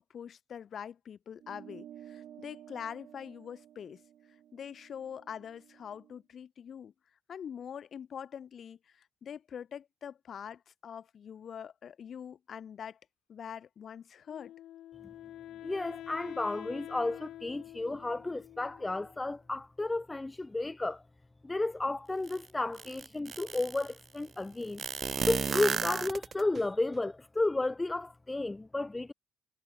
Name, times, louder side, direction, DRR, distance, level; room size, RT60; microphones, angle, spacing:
voice 1, 0.1-4.0 4.5-6.9 7.3-13.0 13.3-14.5, left 8 dB, 55° left, 5.2 m, -44 dB
sound 1, 1.4-6.2, right 10 dB, 70° right, 3.0 m, -53 dB
Wind instrument woodwind instrument, 14.3-19.3, left 13 dB, 80° left, 2.3 m, -47 dB
voice 2, 15.6-21.0 21.4-24.8 25.3-29.1, left 2 dB, 15° left, 0.4 m, -32 dB
sound 2, 22.3-22.4 22.8-23.9 24.8-26.6, right 6 dB, 45° right, 1.1 m, -33 dB
cardioid pair, 90°, 0 cm